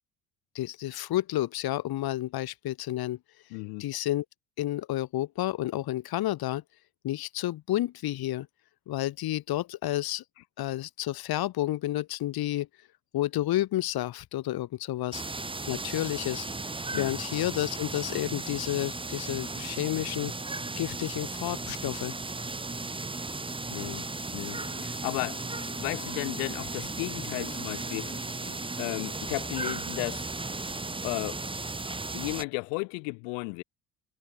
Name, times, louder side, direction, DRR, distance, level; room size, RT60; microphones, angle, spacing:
voice 1, 0.5-3.2 3.8-4.2 4.6-6.6 7.0-8.5 8.9-10.2 10.6-12.7 13.1-15.2 15.7-16.5 17.0-20.3 20.8-22.1, left 14 dB, 55° left, 1.8 m, -30 dB
voice 2, 3.5-3.9 16.9-17.1 23.7-25.5 25.8-28.2 28.8-30.3 31.0-31.5 31.9-33.6, left 40 dB or more, 70° left, 3.7 m, -34 dB
sound 1, 15.1-32.4, right 3 dB, 10° right, 1.4 m, -36 dB
Marimba xylophone, 24.5-29.7, left 5 dB, 30° left, 7.5 m, -49 dB
hypercardioid pair, 60°, 45 cm